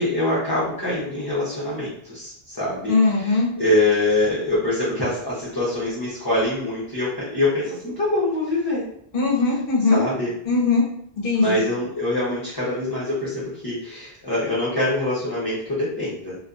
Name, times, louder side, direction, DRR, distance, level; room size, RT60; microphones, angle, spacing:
voice 1, 0.0-8.9 9.9-10.3 11.3-16.4, left 1 dB, 25° left, -9 dB, 0.6 m, -24 dB
voice 2, 2.9-3.5 9.1-10.0 10.4-10.8 11.2-11.7, left 3 dB, 60° left, -2 dB, 0.8 m, -20 dB
2.5 x 2.2 x 2.4 m, 0.68 s
omnidirectional pair, 1.1 m